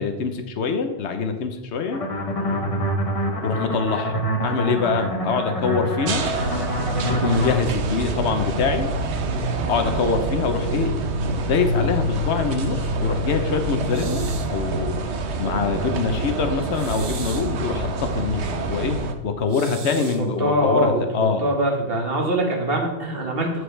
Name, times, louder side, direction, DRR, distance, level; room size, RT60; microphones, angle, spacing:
voice 1, 0.0-2.0 3.4-6.3 7.1-8.9 9.7-10.9 11.2-15.0 15.4-19.0 19.2-21.4, left 5 dB, 80° left, 7 dB, 1.1 m, -24 dB
sound 1, 1.9-7.6, equal, 35° left, 1.1 m, -26 dB
sound 2, 6.1-19.1, right 2 dB, 85° right, 1.1 m, -26 dB
sound 3, 13.9-14.6 16.7-17.6 19.5-20.3, right 6 dB, 45° right, 0.5 m, -38 dB
voice 2, 19.9-21.0 21.4-23.6, right 1 dB, 60° right, 0 dB, 1.8 m, -23 dB
14.0 x 4.7 x 3.3 m, 1.0 s
omnidirectional pair, 1.1 m